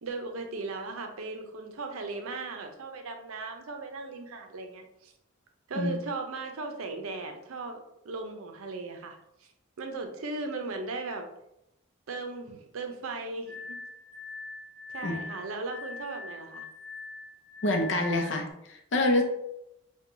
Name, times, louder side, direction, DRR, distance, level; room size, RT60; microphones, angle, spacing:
voice 1, 0.0-5.1 5.7-7.8 8.0-9.2 9.8-11.3 12.1-13.8 14.9-16.6, right 3 dB, 90° right, 5 dB, 0.5 m, -37 dB
Glass, 13.5-18.5, left 4 dB, 5° left, 0.5 m, -42 dB
voice 2, 17.6-19.2, left 1 dB, 60° left, 3 dB, 0.6 m, -26 dB
4.4 x 2.3 x 2.6 m, 0.81 s
head